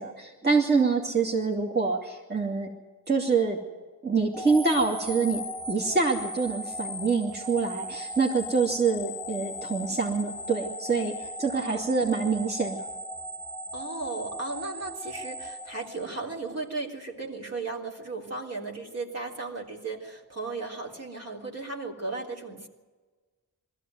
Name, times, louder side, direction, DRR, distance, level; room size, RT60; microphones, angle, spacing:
voice 1, 0.0-2.7 3.1-3.6 4.0-12.9, right 4 dB, 30° right, -2 dB, 2.7 m, -26 dB
voice 2, 0.7-1.1 11.5-12.1 13.7-22.7, right 3 dB, 45° right, -1 dB, 3.4 m, -36 dB
sound 1, 4.3-16.5, left 1 dB, 5° right, 3.5 m, -38 dB
21.5 x 15.0 x 9.4 m, 1.3 s
cardioid pair, 75°, 36 cm